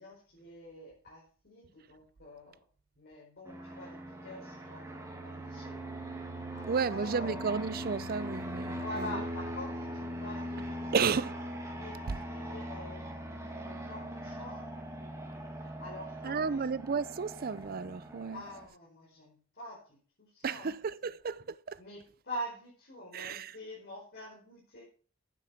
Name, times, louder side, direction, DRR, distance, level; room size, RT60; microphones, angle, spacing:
voice 1, 0.0-2.6 3.0-5.8 6.5-7.4 8.7-11.2 11.8-13.0 13.5-14.7 15.8-16.7 18.3-20.7 21.0-21.1 21.8-24.8, left 1 dB, 50° left, 4.9 m, -46 dB
Fixed-wing aircraft airplane, 3.4-18.6, equal, 15° right, 2.3 m, -41 dB
voice 2, 6.7-9.2 10.9-11.4 12.1-12.2 16.2-18.4 20.4-21.8 23.1-23.5, right 5 dB, 45° right, 0.5 m, -33 dB
9.8 x 9.2 x 5.8 m
head